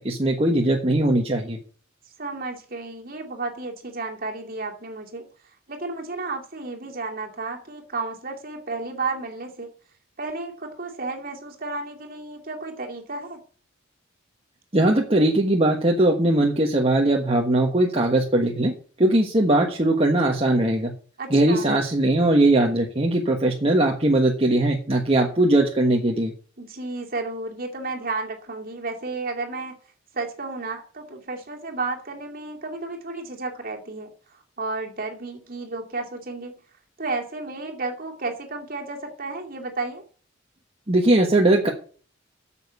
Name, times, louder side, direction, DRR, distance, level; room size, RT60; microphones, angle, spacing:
voice 1, 0.0-1.6 14.7-18.7 19.0-20.9 21.3-26.3 40.9-41.7, right 1 dB, 30° right, 0 dB, 1.4 m, -20 dB
voice 2, 2.2-5.3 5.7-9.7 10.2-13.4 21.2-21.7 26.6-29.8 30.1-34.1 34.6-36.6 37.0-40.0, right 3 dB, 45° right, 2 dB, 2.5 m, -32 dB
9.1 x 7.3 x 8.1 m, 0.42 s
head